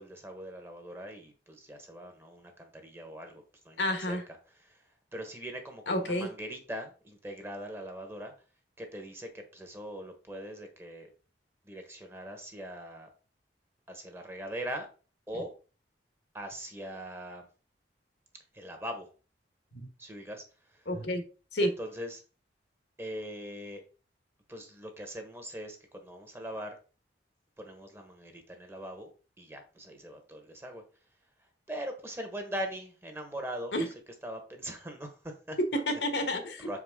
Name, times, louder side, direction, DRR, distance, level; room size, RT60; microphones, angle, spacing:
voice 1, 0.0-4.2 4.5-4.8 5.1-8.3 8.8-11.1 11.6-13.1 13.9-14.9 15.3-15.5 16.3-17.5 18.5-19.1 20.0-20.4 20.7-20.8 21.6-22.2 23.0-23.8 24.5-26.8 27.6-29.1 29.4-30.8 31.7-33.9 34.2-35.6 36.6-36.8, equal, 15° right, 4 dB, 1.2 m, -41 dB
voice 2, 3.8-4.2 5.9-6.3 19.7-19.9 20.9-21.2 21.5-21.7 33.7-33.9 35.7-36.8, left 1 dB, 75° left, 6 dB, 1.4 m, -30 dB
6.5 x 4.8 x 3.7 m, 0.35 s
head